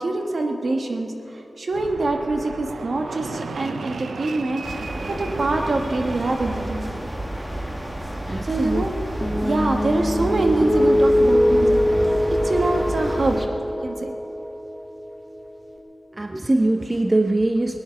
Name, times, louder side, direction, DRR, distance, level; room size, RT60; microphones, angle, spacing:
voice 1, 0.0-6.9 8.4-8.9 9.4-13.4 13.8-14.1, right 2 dB, 65° right, 3 dB, 1.4 m, -25 dB
Fixed-wing aircraft airplane, 1.7-7.4, right 4 dB, 90° right, 0.5 m, -35 dB
sound 1, 4.6-13.5, right 1 dB, 15° right, 1.5 m, -30 dB
voice 2, 8.3-8.8 16.1-17.8, right 2 dB, 30° right, 6 dB, 0.7 m, -22 dB
sound 2, 9.2-15.8, left 1 dB, 10° left, 2.5 m, -22 dB
17.5 x 9.8 x 6.9 m, 3.0 s
wide cardioid pair, 65°, 0 cm